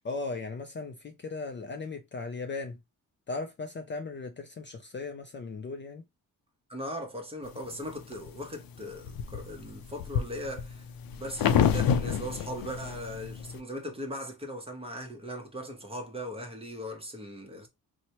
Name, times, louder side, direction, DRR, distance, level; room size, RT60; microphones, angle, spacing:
voice 1, 0.0-2.8 3.3-6.0, left 3 dB, 35° left, 0.4 m, -37 dB
voice 2, 6.7-10.9 11.2-17.7, equal, 15° right, 0.7 m, -39 dB
sound 1, 7.6-8.3 8.8-13.6, left 8 dB, 90° left, 0.5 m, -28 dB
4.3 x 2.1 x 2.7 m
wide cardioid pair, 165°, 34 cm